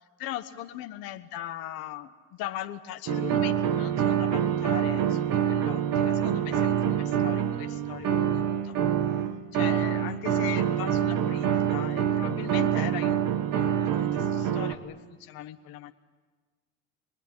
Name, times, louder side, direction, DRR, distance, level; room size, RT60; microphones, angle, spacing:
voice 1, 0.2-8.8 9.5-15.9, left 13 dB, 75° left, 7 dB, 1.3 m, -39 dB
sound 1, 3.1-14.7, right 9 dB, 65° right, 1.9 m, -26 dB
28.0 x 19.5 x 9.8 m, 1.3 s
hypercardioid pair, 65°, 35 cm